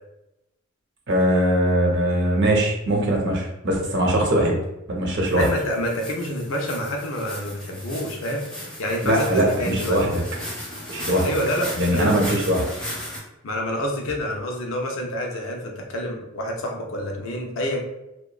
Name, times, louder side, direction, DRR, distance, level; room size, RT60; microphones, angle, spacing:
voice 1, 1.1-4.6 4.9-5.5 9.0-10.2 10.9-11.3 11.8-12.6, right 1 dB, 55° right, 0 dB, 0.6 m, -21 dB
sound 1, 5.3-13.2, equal, 5° left, 0.6 m, -36 dB
voice 2, 5.4-10.0 11.2-12.4 13.4-17.8, equal, 70° left, 1 dB, 0.5 m, -27 dB
2.8 x 2.2 x 2.3 m, 0.92 s
head